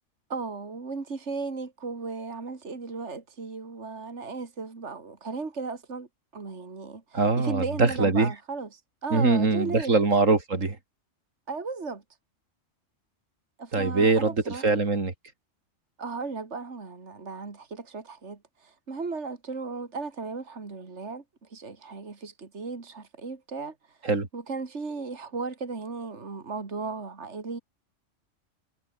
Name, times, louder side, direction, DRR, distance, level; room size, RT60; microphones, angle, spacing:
voice 1, 0.3-6.1 6.3-7.0 7.4-8.7 9.0-9.9 11.5-12.0 13.6-14.7 16.0-18.4 18.9-21.2 21.5-23.7 24.3-27.6, right 4 dB, 60° right, 2.7 m, -35 dB
voice 2, 7.1-8.3 9.1-10.8 13.7-14.3 14.6-15.1 24.0-24.3, right 3 dB, 80° right, 3.3 m, -22 dB
omnidirectional pair, 1.3 m